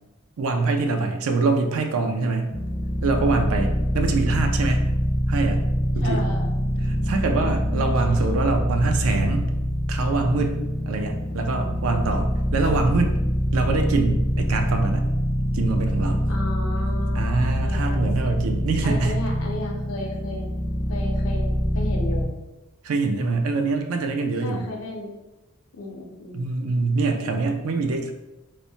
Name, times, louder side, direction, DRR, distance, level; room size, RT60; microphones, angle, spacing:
voice 1, 0.4-2.5 3.0-4.8 5.3-5.6 5.9-6.2 6.8-9.4 9.9-10.6 10.9-13.2 13.5-15.1 15.5-16.2 17.1-19.2 22.8-24.7 26.3-28.1, right 3 dB, 70° right, 5 dB, 0.4 m, -24 dB
sound 1, 2.5-22.3, equal, 20° left, 0.4 m, -24 dB
voice 2, 6.0-6.5 8.1-8.4 16.3-18.3 18.8-20.5 20.9-22.3 24.4-25.1 25.7-26.4, left 2 dB, 75° left, 1 dB, 0.6 m, -34 dB
3.1 x 2.0 x 2.6 m, 1.0 s
head